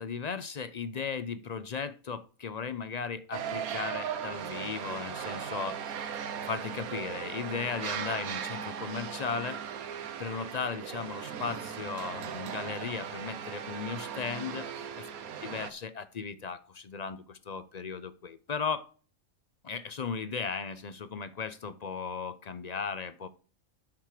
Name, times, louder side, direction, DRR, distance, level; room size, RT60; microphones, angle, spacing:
voice 1, 0.0-6.0 6.4-9.6 10.2-14.7 15.0-15.1 15.4-18.9 19.6-23.3, left 5 dB, 60° left, 13 dB, 0.4 m, -36 dB
sound 1, 3.3-15.7, right 8 dB, 90° right, 1.4 m, -38 dB
9.4 x 6.5 x 4.9 m, 0.39 s
omnidirectional pair, 1.5 m